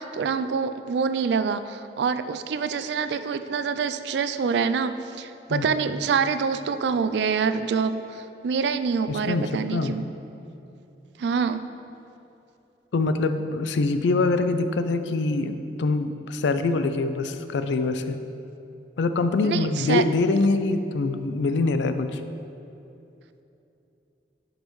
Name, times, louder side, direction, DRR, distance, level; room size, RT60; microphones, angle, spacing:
voice 1, 0.0-10.0 11.2-11.6 19.4-20.0, right 5 dB, 80° right, 11 dB, 0.3 m, -26 dB
voice 2, 9.1-9.4 9.7-10.0 12.9-18.2 19.0-22.2, left 3 dB, 90° left, 10 dB, 0.4 m, -24 dB
10.5 x 5.4 x 3.1 m, 2.8 s
head